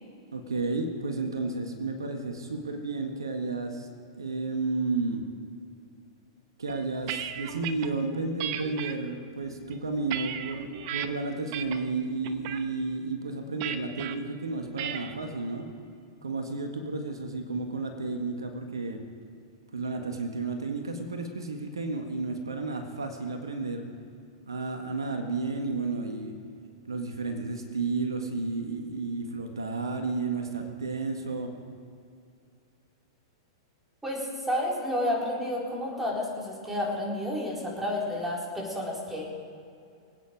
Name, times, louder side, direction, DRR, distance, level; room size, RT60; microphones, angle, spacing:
voice 1, 0.3-3.9 4.2-5.2 6.6-15.7 16.2-19.0 19.7-23.8 24.5-26.3 26.9-31.5, right 3 dB, 90° right, 5 dB, 1.7 m, -32 dB
sound 1, 6.7-7.9 8.4-8.9 9.5-11.1 11.5-11.9 12.2-12.6 13.6-14.1 14.8-15.2, right 10 dB, 50° right, 1.0 m, -35 dB
voice 2, 34.0-39.3, left 1 dB, 10° right, -3 dB, 4.3 m, -30 dB
25.5 x 9.2 x 4.8 m, 2.4 s
hypercardioid pair, 110°, 2 cm